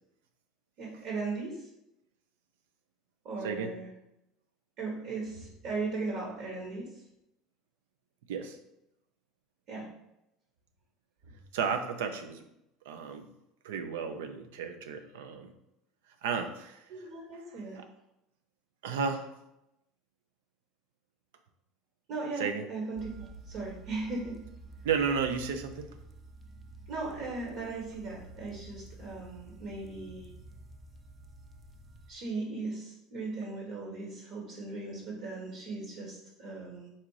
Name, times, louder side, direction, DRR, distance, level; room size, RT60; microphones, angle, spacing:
voice 1, 0.8-1.7 3.2-3.9 4.8-7.0 9.7-9.9 16.9-17.8 22.1-24.4 26.9-30.3 32.1-36.9, right 3 dB, 60° right, -2 dB, 1.3 m, -38 dB
voice 2, 11.5-12.4 12.8-13.3 13.6-15.5 16.2-16.8 17.5-17.8 18.8-19.3 22.4-22.6 24.8-25.9, right 6 dB, 80° right, 7 dB, 0.6 m, -33 dB
sound 1, 23.0-32.1, right 2 dB, 25° right, 0.6 m, -50 dB
4.3 x 2.4 x 4.7 m, 0.85 s
hypercardioid pair, 90°, 0 cm